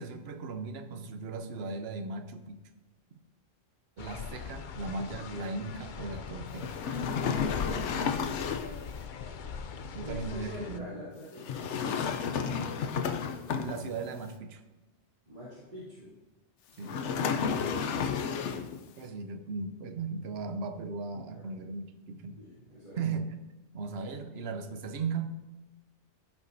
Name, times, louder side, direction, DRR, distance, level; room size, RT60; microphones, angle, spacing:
voice 1, 0.0-2.6 4.0-6.8 9.9-10.9 13.6-14.6 16.8-17.1 19.0-22.4 23.0-23.4 23.7-25.3, right 4 dB, 65° right, 7 dB, 1.0 m, -37 dB
sound 1, 4.0-10.8, left 6 dB, 55° left, 0.6 m, -41 dB
sound 2, 6.6-8.8 11.4-14.1 16.8-18.8, left 6 dB, 85° left, 1.0 m, -32 dB
voice 2, 7.6-8.3 10.0-12.3 13.2-13.5 15.2-16.1 16.8-18.2 21.1-21.4 22.4-23.0, left 1 dB, 40° right, -12 dB, 3.2 m, -46 dB
15.0 x 6.0 x 2.7 m, 1.1 s
omnidirectional pair, 1.2 m